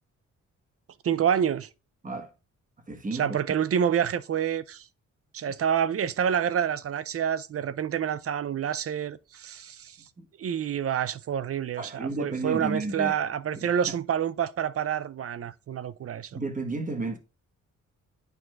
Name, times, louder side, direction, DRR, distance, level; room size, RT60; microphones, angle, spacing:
voice 1, 1.0-1.7 3.1-4.9 5.3-10.0 10.4-16.4, right 8 dB, 50° right, 0.5 m, -28 dB
voice 2, 2.9-3.4 10.2-10.3 11.8-13.1 13.6-14.0 16.3-17.2, right 3 dB, 25° right, 1.3 m, -32 dB
11.0 x 4.3 x 2.4 m
wide cardioid pair, 120°, 31 cm